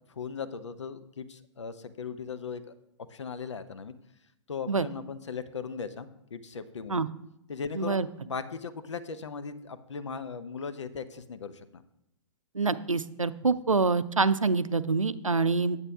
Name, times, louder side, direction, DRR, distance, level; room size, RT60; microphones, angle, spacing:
voice 1, 0.1-2.7 3.1-4.0 4.5-7.1 7.5-11.8, left 5 dB, 65° left, 10 dB, 0.7 m, -38 dB
voice 2, 7.8-8.1 12.5-15.8, right 4 dB, 85° right, 14 dB, 0.5 m, -26 dB
8.8 x 8.1 x 3.5 m, 0.84 s
figure-of-eight pair, 115°, 16 cm